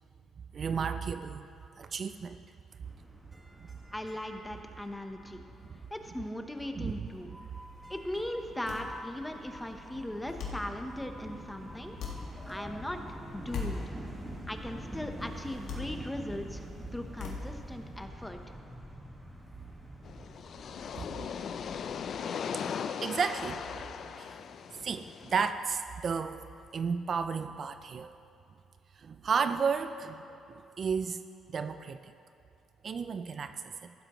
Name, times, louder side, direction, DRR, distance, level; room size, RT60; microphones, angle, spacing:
voice 1, 0.5-1.5 1.8-2.4 6.8-7.1 21.0-21.1 22.5-23.6 24.2-24.4 24.8-26.4 26.7-28.1 29.0-31.2 31.5-32.1 32.8-33.9, right 5 dB, 50° right, 10 dB, 0.4 m, -33 dB
sound 1, 2.8-22.2, equal, 15° right, 1.6 m, -46 dB
voice 2, 3.9-5.4 5.9-7.3 7.9-12.0 12.5-13.8 14.5-16.6 16.9-18.4, left 1 dB, 10° left, 5 dB, 0.9 m, -38 dB
sound 2, 7.5-18.0, left 5 dB, 85° left, 1.7 m, -44 dB
sound 3, 20.0-25.5, left 7 dB, 60° left, 0.4 m, -38 dB
15.0 x 12.0 x 3.0 m, 2.6 s
cardioid pair, 90°, 0 cm